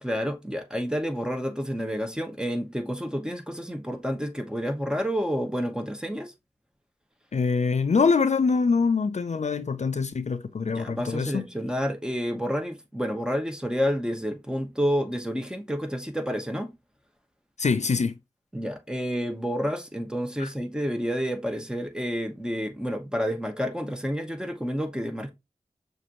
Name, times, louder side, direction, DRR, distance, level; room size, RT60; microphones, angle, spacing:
voice 1, 0.0-6.3 10.7-16.7 18.5-25.3, equal, 5° right, 1.0 m, -29 dB
voice 2, 7.3-11.5 17.6-18.2 20.4-20.5, left 5 dB, 60° left, 0.5 m, -24 dB
6.2 x 2.6 x 2.9 m
wide cardioid pair, 55°, 13 cm